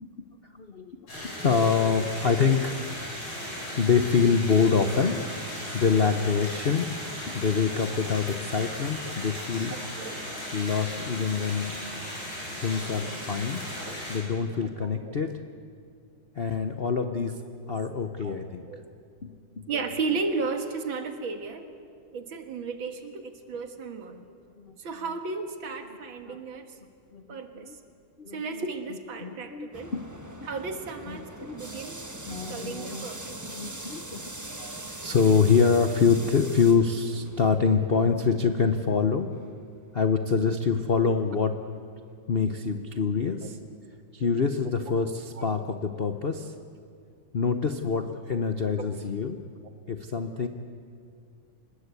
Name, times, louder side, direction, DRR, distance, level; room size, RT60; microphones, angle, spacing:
voice 1, 0.6-1.0 1.3-2.8 3.8-5.2 5.7-6.9 7.3-9.8 10.5-11.7 12.6-13.6 14.1-15.3 16.4-17.3 17.7-18.6 19.2-19.7 24.1-24.2 24.6-24.7 26.3-26.4 27.1-27.7 28.2-28.4 29.2-30.0 31.1-31.5 32.3-33.1 33.4-34.2 34.5-39.3 39.9-41.5 42.3-43.6 44.1-46.5 47.3-49.4 49.9-50.5, left 5 dB, 50° left, 6 dB, 0.7 m, -25 dB
sound 1, 1.1-14.2, equal, 80° left, 8.9 m, -37 dB
voice 2, 9.7-10.2 11.7-11.8 13.7-14.0 14.8-15.2 18.2-18.4 18.7-18.9 19.7-21.7 22.1-24.2 24.8-26.7 27.3-27.7 28.3-30.0 30.4-33.4 43.4-43.5 45.4-45.5 48.8-48.9, right 4 dB, 70° right, 6 dB, 2.4 m, -34 dB
sound 2, 29.7-40.6 40.9-41.0 41.8-41.9 43.4-43.5, right 1 dB, 10° right, 0.9 m, -42 dB
26.0 x 20.0 x 8.3 m, 2.3 s
omnidirectional pair, 2.3 m